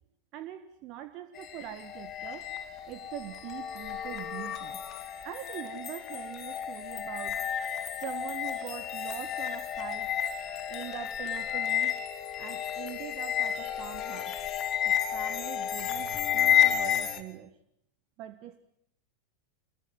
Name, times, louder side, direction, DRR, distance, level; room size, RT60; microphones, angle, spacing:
voice 1, 0.3-2.5 2.9-4.8 5.2-7.4 8.0-10.1 10.7-11.9 12.4-14.3 14.8-17.6 18.2-18.6, right 12 dB, 40° right, 10 dB, 1.6 m, -42 dB
sound 1, 1.4-17.2, left 10 dB, 30° left, 2.4 m, -31 dB
26.5 x 21.5 x 9.5 m, 0.72 s
figure-of-eight pair, 90°, 0 cm